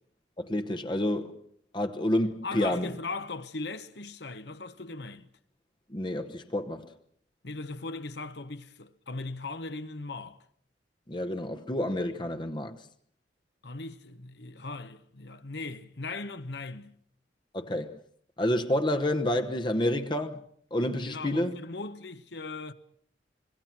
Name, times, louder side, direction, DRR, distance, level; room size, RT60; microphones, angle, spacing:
voice 1, 0.4-1.4 1.7-2.9 5.9-6.9 11.1-12.8 17.5-18.0 18.4-20.4 20.7-21.5, left 1 dB, 25° left, 1.0 m, -29 dB
voice 2, 2.4-5.3 7.4-10.4 13.6-17.0 21.0-22.7, left 3 dB, 70° left, 1.2 m, -38 dB
26.0 x 22.5 x 6.0 m
head